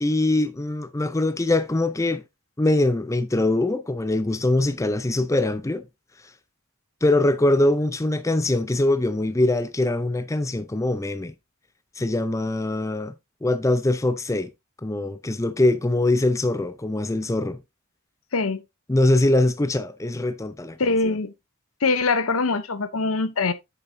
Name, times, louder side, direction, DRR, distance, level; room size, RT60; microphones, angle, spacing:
voice 1, 0.0-2.2 2.6-5.9 7.0-11.3 12.0-13.1 13.4-14.5 14.8-17.6 18.9-20.8, left 2 dB, 15° left, 0.5 m, -22 dB
voice 2, 18.3-18.6 20.8-21.3 21.8-23.5, left 3 dB, 80° left, 0.8 m, -23 dB
8.2 x 6.8 x 2.7 m
head